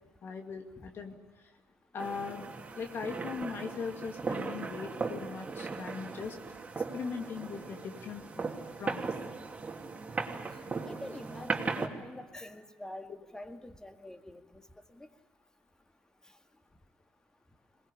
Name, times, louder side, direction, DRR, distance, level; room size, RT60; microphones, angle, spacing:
voice 1, 0.2-1.2 1.9-6.4 6.9-8.5 8.8-9.1, left 5 dB, 50° left, 4 dB, 2.3 m, -40 dB
sound 1, 2.0-11.9, right 4 dB, 30° right, 2.8 m, -38 dB
voice 2, 10.9-14.6 15.0-15.1, left 1 dB, 10° left, 7 dB, 2.0 m, -46 dB
22.0 x 19.5 x 9.9 m, 1.3 s
hypercardioid pair, 60°, 5 cm